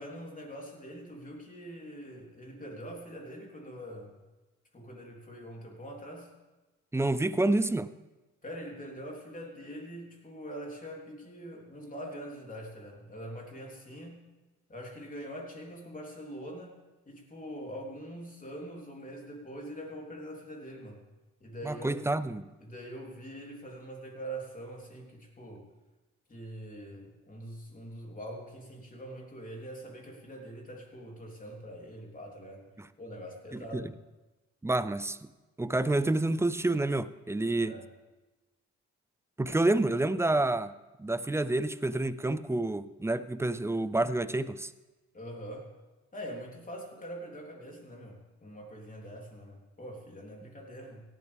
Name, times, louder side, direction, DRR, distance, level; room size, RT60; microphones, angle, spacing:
voice 1, 0.0-4.2 4.7-6.3 8.4-14.2 14.7-16.8 17.1-21.0 21.4-22.0 22.6-25.7 26.3-32.7 33.0-33.9 37.7-37.8 45.1-45.7 46.1-51.0, equal, 25° left, 0 dB, 3.4 m, -43 dB
voice 2, 6.9-7.9 21.6-22.5 32.8-32.9 33.7-33.9 34.6-35.2 35.6-37.8 39.4-40.7 41.0-44.7, right 2 dB, 10° right, 15 dB, 0.5 m, -28 dB
17.0 x 12.0 x 3.5 m, 1.1 s
cardioid pair, 90°, 30 cm